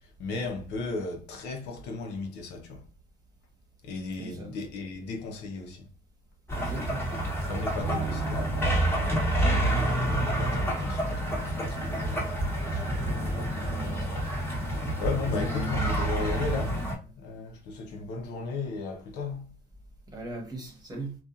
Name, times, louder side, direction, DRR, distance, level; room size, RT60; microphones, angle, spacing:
voice 1, 0.0-2.8 3.8-5.9 7.5-12.9 14.0-14.1 14.5-19.5, left 4 dB, 85° left, 0.7 m, -36 dB
voice 2, 4.2-4.5 6.5-7.1 13.7-13.9 15.3-15.9 20.1-21.2, right 2 dB, 25° right, 1.0 m, -38 dB
sound 1, 6.5-16.9, right 1 dB, 15° left, 1.0 m, -28 dB
Bass guitar, 7.8-14.1, right 6 dB, 65° right, 0.4 m, -40 dB
2.7 x 2.3 x 2.4 m
cardioid pair, 110°, 17 cm